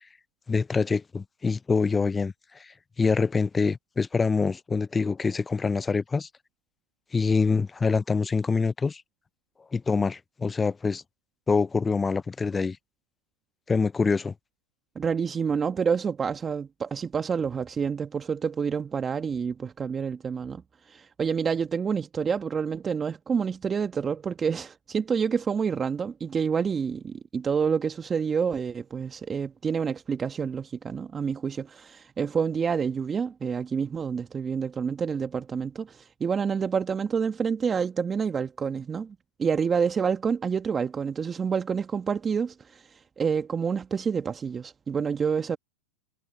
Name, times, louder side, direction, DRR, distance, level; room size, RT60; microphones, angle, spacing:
voice 1, 0.5-6.3 7.1-9.0 9.7-11.0 11.5-12.8 13.7-14.3, left 4 dB, 15° left, 0.4 m, -25 dB
voice 2, 14.9-45.6, right 6 dB, 20° right, 1.2 m, -28 dB
hypercardioid pair, 110°, 0 cm